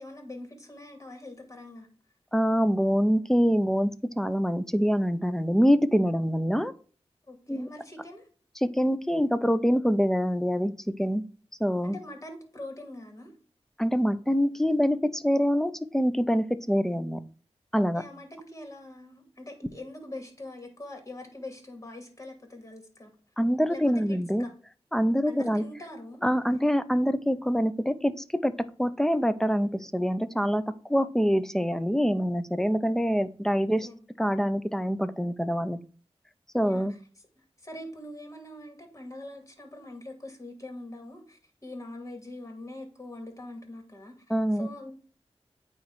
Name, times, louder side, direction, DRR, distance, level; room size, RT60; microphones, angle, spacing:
voice 1, 0.0-1.9 7.3-8.2 11.8-13.3 17.9-23.1 23.7-24.5 25.3-26.3 33.8-34.1 36.6-36.9 37.6-44.1 44.5-44.9, left 1 dB, 30° left, 2.5 m, -43 dB
voice 2, 2.3-3.9 4.2-6.7 7.5-7.7 8.6-10.7 11.0-11.2 11.6-11.9 13.8-17.2 17.7-18.0 23.4-24.5 24.9-25.6 26.2-28.1 28.4-28.5 28.8-30.6 30.9-33.9 34.2-35.8 36.5-36.9 44.3-44.7, equal, 5° left, 0.6 m, -25 dB
8.9 x 3.2 x 4.7 m
cardioid pair, 50°, 11 cm